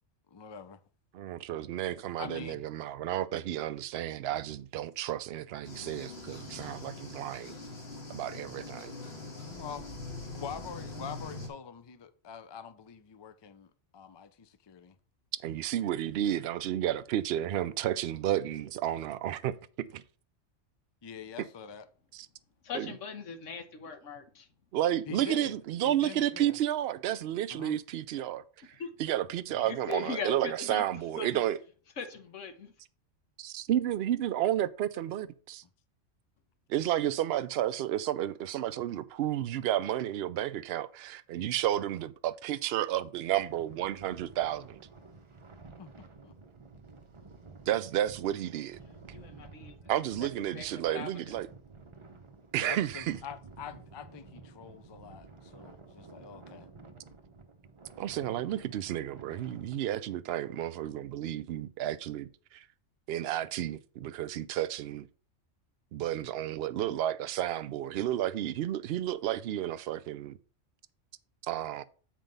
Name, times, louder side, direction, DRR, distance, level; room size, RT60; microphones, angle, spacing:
voice 1, 0.3-0.8 2.2-2.6 9.5-9.9 10.3-15.0 21.0-21.8 25.1-25.5 25.8-26.5 27.5-27.8 29.5-29.7 45.8-45.9 46.2-46.3 52.6-56.7, left 7 dB, 35° left, 0.4 m, -44 dB
voice 2, 1.1-7.5 8.1-8.9 15.4-20.0 22.1-22.3 22.7-22.9 24.7-28.4 29.0-31.6 33.4-35.6 36.7-44.8 47.7-48.8 49.9-51.5 52.5-53.2 58.0-62.6 63.1-65.1 65.9-70.4 71.4-71.8, right 12 dB, 65° right, 0.7 m, -32 dB
sound 1, 5.6-11.5, left 2 dB, 55° left, 1.9 m, -43 dB
voice 3, 22.6-24.5 28.8-28.9 29.6-30.8 31.2-31.4 32.0-32.7 49.1-49.7 50.2-51.4, left 5 dB, 85° left, 1.4 m, -40 dB
sound 2, 43.3-59.8, right 3 dB, 30° right, 0.7 m, -52 dB
7.6 x 4.5 x 5.3 m
omnidirectional pair, 1.3 m